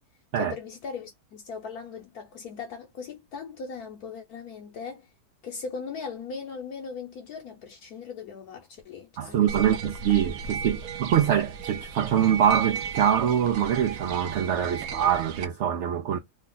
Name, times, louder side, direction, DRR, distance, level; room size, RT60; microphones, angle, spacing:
voice 1, 0.3-5.1 5.4-9.7, left 5 dB, 65° left, 1.2 m, -39 dB
voice 2, 9.2-16.2, right 9 dB, 90° right, 0.6 m, -24 dB
sound 1, 9.5-15.5, right 6 dB, 70° right, 0.9 m, -35 dB
3.1 x 2.3 x 3.8 m
omnidirectional pair, 1.8 m